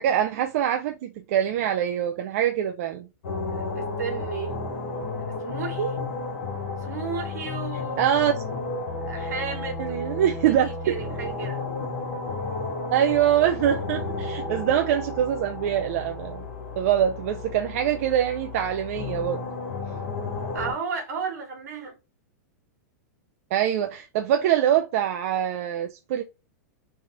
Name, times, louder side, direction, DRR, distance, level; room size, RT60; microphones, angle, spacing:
voice 1, 0.0-3.1 8.0-8.3 9.8-10.7 12.9-16.5 16.8-19.4 23.5-26.2, right 10 dB, 60° right, 0.4 m, -24 dB
sound 1, 3.2-20.7, left 3 dB, 75° left, 1.3 m, -33 dB
voice 2, 3.5-4.5 5.4-6.0 6.8-8.1 9.0-10.5 10.8-11.6 20.5-21.9, right 6 dB, 85° right, 1.5 m, -33 dB
3.4 x 2.3 x 3.9 m
hypercardioid pair, 135°, 9 cm